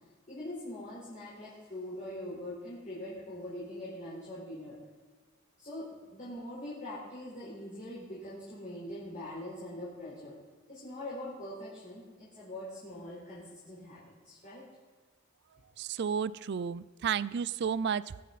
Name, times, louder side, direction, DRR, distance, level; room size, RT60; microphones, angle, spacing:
voice 1, 0.3-4.8 5.6-10.3 10.7-14.0 14.2-14.6, left 1 dB, 35° left, -9 dB, 4.4 m, -42 dB
voice 2, 15.8-18.2, right 7 dB, 50° right, 19 dB, 0.4 m, -32 dB
22.0 x 8.5 x 4.1 m, 1.4 s
head